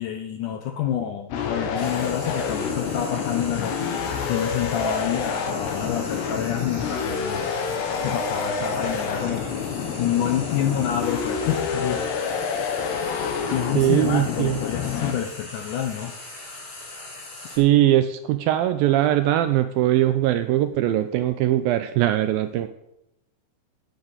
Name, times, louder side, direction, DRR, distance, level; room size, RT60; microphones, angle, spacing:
voice 1, 0.0-3.8 4.3-7.5 8.0-9.6 10.0-12.0 13.5-16.1, left 10 dB, 70° left, 5 dB, 2.0 m, -28 dB
sound 1, 1.3-15.1, left 6 dB, 90° left, 3.5 m, -28 dB
Frying (food), 1.7-17.6, left 2 dB, 35° left, 4.0 m, -40 dB
voice 2, 13.7-14.6 17.5-22.7, right 13 dB, 80° right, 10 dB, 2.2 m, -21 dB
10.0 x 8.7 x 8.0 m, 0.84 s
omnidirectional pair, 4.6 m